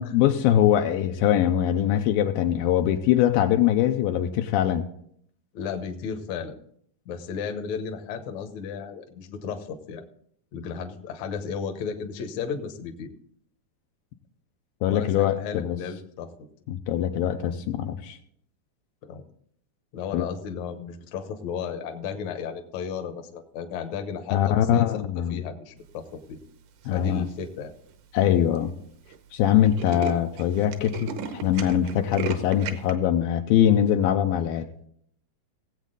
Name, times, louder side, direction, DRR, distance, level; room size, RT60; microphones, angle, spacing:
voice 1, 0.0-4.8 14.8-15.8 16.7-18.2 20.1-20.3 24.3-25.4 26.9-27.3 28.1-28.7 29.3-31.2 31.4-34.7, left 10 dB, 80° left, 6 dB, 2.3 m, -22 dB
voice 2, 5.5-6.6 7.1-10.0 10.5-13.1 14.9-16.3 19.0-19.2 19.9-25.0 25.3-26.4 26.9-27.7, left 6 dB, 65° left, 6 dB, 1.9 m, -34 dB
Tools, 26.9-27.3 27.9-28.0 28.2-28.3 28.6-28.8 29.1-29.2 29.4-32.9, right 7 dB, 70° right, 2.1 m, -35 dB
17.5 x 8.2 x 3.9 m, 0.67 s
omnidirectional pair, 4.4 m